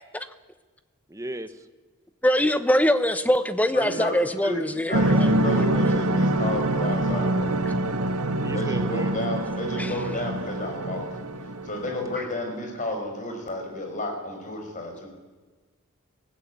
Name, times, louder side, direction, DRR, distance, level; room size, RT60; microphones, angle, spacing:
voice 1, 1.1-1.7 8.4-9.1, right 1 dB, 15° right, 10 dB, 1.1 m, -35 dB
voice 2, 2.2-5.3 9.8-9.9, equal, 5° left, 11 dB, 1.0 m, -23 dB
voice 3, 3.7-4.2 4.4-4.6 4.9-7.5 8.5-11.1 11.7-15.1, left 1 dB, 35° left, 3 dB, 5.3 m, -32 dB
sound 1, 4.9-12.2, right 1 dB, 85° right, 1.7 m, -25 dB
23.5 x 16.0 x 9.5 m, 1.3 s
head